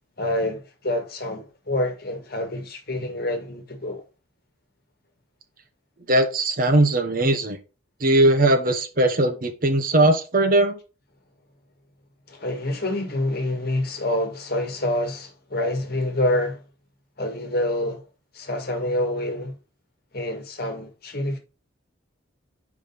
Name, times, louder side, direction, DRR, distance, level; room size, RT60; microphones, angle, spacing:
voice 1, 0.2-4.0 12.3-16.6 17.2-18.0 18.3-19.5 20.1-21.4, left 1 dB, 50° left, 1.6 m, -27 dB
voice 2, 6.1-7.6 8.0-10.8, right 1 dB, 45° right, 1.0 m, -19 dB
5.1 x 5.0 x 5.5 m
head